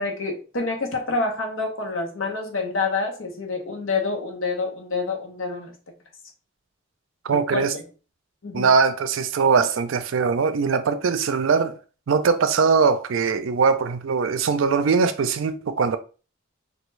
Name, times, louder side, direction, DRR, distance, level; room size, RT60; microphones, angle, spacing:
voice 1, 0.0-5.7 7.3-7.8 8.4-8.7, left 3 dB, 80° left, 0.9 m, -27 dB
voice 2, 7.2-7.7 8.5-11.7 12.1-16.0, right 5 dB, 75° right, 0.4 m, -21 dB
3.4 x 2.3 x 3.1 m
head